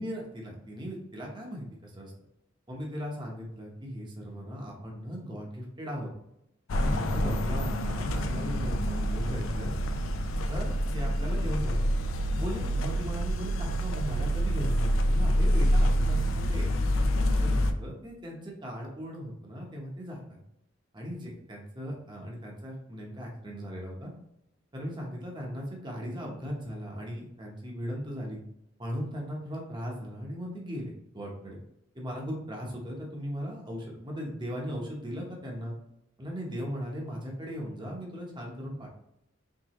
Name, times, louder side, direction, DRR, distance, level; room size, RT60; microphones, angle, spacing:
voice 1, 0.0-2.1 2.7-6.1 6.7-9.7 10.5-11.8 12.3-16.2 16.5-16.7 17.3-20.4 20.9-24.1 24.7-28.4 28.8-31.6 31.9-35.7 36.2-38.9, equal, 25° right, -1 dB, 1.0 m, -38 dB
sound 1, 6.7-17.7, equal, 85° left, 0.5 m, -27 dB
4.7 x 3.3 x 3.1 m, 0.80 s
head